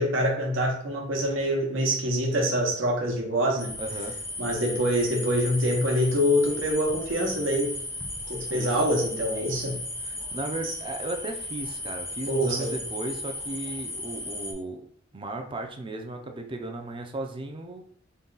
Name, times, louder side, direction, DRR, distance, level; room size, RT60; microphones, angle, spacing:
voice 1, 0.0-3.8 4.4-7.7 8.3-9.8 10.6-10.7 12.3-12.8, equal, 80° right, 0 dB, 1.0 m, -25 dB
sound 1, 3.6-14.5, left 2 dB, 15° left, 0.6 m, -36 dB
voice 2, 3.8-4.2 8.5-8.8 10.0-14.9 15.1-17.8, right 2 dB, 25° right, 4 dB, 0.5 m, -35 dB
3.9 x 2.3 x 3.8 m, 0.63 s
head